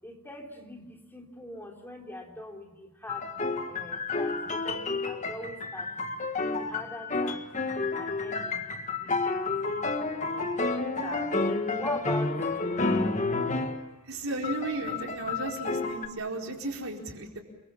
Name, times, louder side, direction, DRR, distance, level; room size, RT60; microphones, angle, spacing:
voice 1, 0.0-3.3 3.7-6.2 6.5-7.4 7.9-9.1 9.4-10.5 11.0-11.3 11.8-12.9, left 1 dB, 10° left, 1 dB, 3.4 m, -43 dB
sound 1, 3.1-13.9 14.4-16.1, left 3 dB, 35° left, 1.8 m, -30 dB
voice 2, 14.1-17.4, right 2 dB, 85° right, 1 dB, 4.6 m, -34 dB
29.5 x 23.5 x 7.0 m, 1.0 s
head